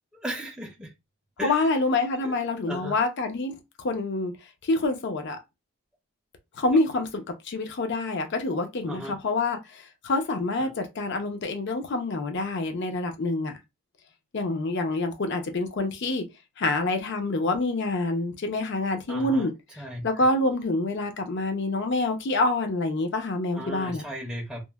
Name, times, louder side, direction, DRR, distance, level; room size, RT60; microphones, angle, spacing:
voice 1, 0.2-0.9 1.4-1.6 2.2-2.3 2.7-3.0 8.9-9.1 10.6-10.7 19.1-19.5 19.8-20.1 23.6-24.6, equal, 5° right, 0.5 m, -35 dB
voice 2, 1.4-4.3 4.6-5.4 6.6-13.5 14.3-16.3 16.6-19.5 20.0-24.0, left 2 dB, 50° left, 0.5 m, -27 dB
2.9 x 2.0 x 2.2 m
head